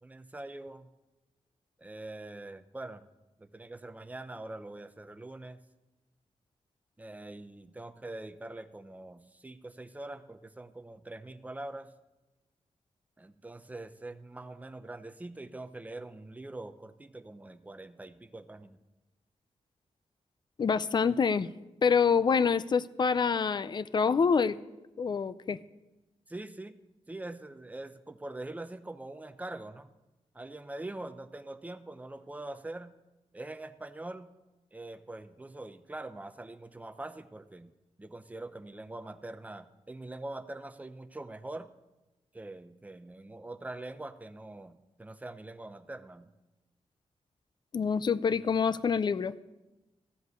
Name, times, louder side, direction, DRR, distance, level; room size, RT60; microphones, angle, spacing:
voice 1, 0.0-0.9 1.8-3.1 3.4-5.6 7.0-11.9 13.2-18.8 26.3-26.8 27.1-29.9 30.3-32.9 33.3-34.3 34.7-37.7 38.0-41.7 42.3-46.3, right 2 dB, 15° right, 10 dB, 0.6 m, -43 dB
voice 2, 20.6-21.5 21.8-24.6 25.0-25.6 47.7-49.3, left 6 dB, 40° left, 17 dB, 0.4 m, -26 dB
14.5 x 5.2 x 7.9 m, 1.1 s
wide cardioid pair, 120°, 12 cm